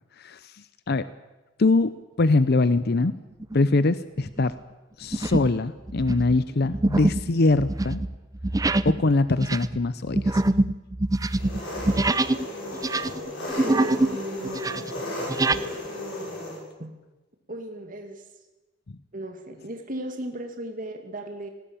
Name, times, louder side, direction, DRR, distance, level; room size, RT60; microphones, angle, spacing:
voice 1, 0.2-1.1 1.6-3.1 3.5-4.5 5.0-8.0 8.8-10.4, left 3 dB, 55° left, 15 dB, 0.7 m, -23 dB
sound 1, 3.4-3.8 4.3-4.5 5.1-5.6 5.9-12.4 12.7-14.2 14.4-15.6, right 2 dB, 20° right, 0.6 m, -25 dB
Engine, 11.3-16.6, left 1 dB, 85° left, 7.9 m, -34 dB
voice 2, 13.6-14.9 15.5-15.8 16.8-16.9 17.5-18.2 19.1-21.5, right 1 dB, 45° right, 4 dB, 2.2 m, -35 dB
19.5 x 17.5 x 8.8 m, 1.1 s
head